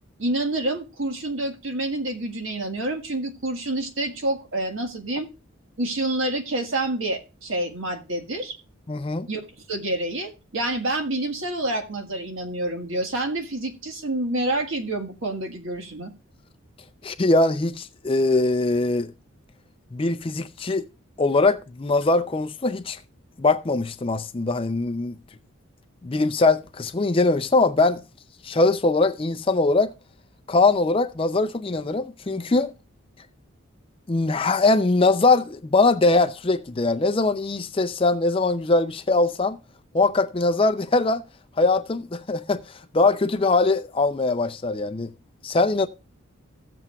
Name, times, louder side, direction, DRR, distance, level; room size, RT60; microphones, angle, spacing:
voice 1, 0.2-5.3 5.8-8.6 9.3-9.4 9.7-16.1, right 1 dB, 70° right, 1.6 m, -28 dB
voice 2, 8.9-9.3 17.0-19.1 19.9-20.8 21.2-23.0 23.4-25.2 26.0-28.0 28.4-29.9 30.5-32.7 34.1-39.6 39.9-41.2 41.6-45.1 45.4-45.9, left 3 dB, 25° left, 0.4 m, -21 dB
16.5 x 7.7 x 2.3 m
head